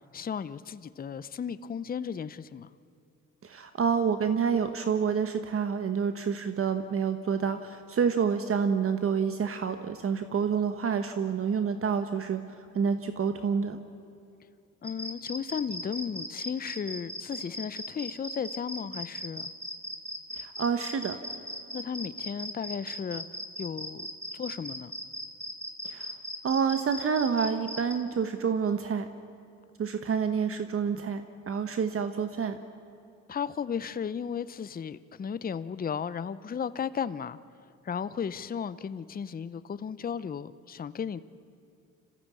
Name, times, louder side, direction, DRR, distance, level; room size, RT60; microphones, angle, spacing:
voice 1, 0.1-2.7 14.8-19.5 21.7-23.2 23.6-24.1 24.3-24.9 33.3-37.4 37.8-41.2, left 7 dB, 30° left, 15 dB, 0.7 m, -35 dB
voice 2, 3.4-12.4 12.7-13.8 20.4-21.2 25.8-26.1 26.4-29.0 29.8-32.6, right 6 dB, 45° right, 8 dB, 1.2 m, -28 dB
sound 1, 14.8-28.0, equal, 10° right, 2.2 m, -38 dB
26.0 x 15.0 x 8.4 m, 2.6 s
cardioid pair, 90°, 30 cm